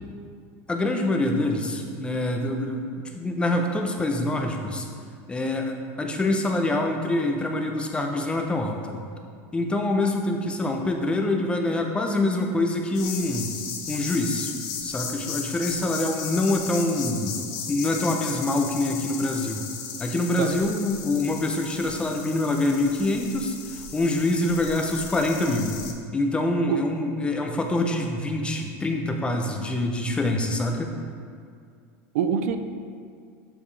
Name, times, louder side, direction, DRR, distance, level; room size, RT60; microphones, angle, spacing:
voice 1, 0.7-4.9 5.3-9.0 9.5-13.5 13.9-14.5 14.8-17.3 17.7-19.7 20.0-25.8 26.1-30.9, left 2 dB, 15° left, 3 dB, 0.6 m, -25 dB
sound 1, 12.9-25.9, left 7 dB, 60° left, 0.8 m, -36 dB
voice 2, 20.4-20.7 26.7-26.9 32.1-32.6, right 7 dB, 85° right, 8 dB, 0.5 m, -25 dB
7.0 x 5.3 x 3.3 m, 2.2 s
supercardioid pair, 135°, 8 cm